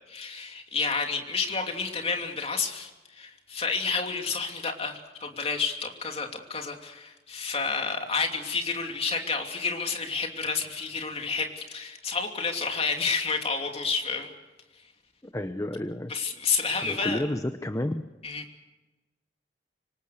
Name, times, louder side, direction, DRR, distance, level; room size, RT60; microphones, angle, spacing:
voice 1, 0.1-14.3 16.1-17.2 18.2-18.4, left 4 dB, 35° left, 3 dB, 2.9 m, -30 dB
voice 2, 15.2-16.1 16.8-18.0, left 1 dB, 15° left, 9 dB, 0.8 m, -31 dB
26.5 x 24.5 x 6.7 m, 1.1 s
head